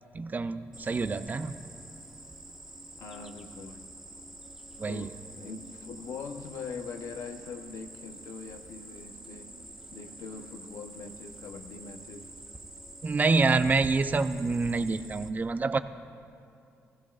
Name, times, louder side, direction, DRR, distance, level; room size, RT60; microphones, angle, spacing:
voice 1, 0.1-1.6 4.8-5.1 13.0-15.8, right 4 dB, 30° right, 12 dB, 0.5 m, -27 dB
Cricket, 0.7-15.3, right 1 dB, 10° right, 1.0 m, -47 dB
voice 2, 3.0-3.9 4.9-9.5 9.9-12.3, left 5 dB, 75° left, 7 dB, 0.8 m, -42 dB
16.0 x 15.5 x 2.4 m, 2.4 s
cardioid pair, 70°, 5 cm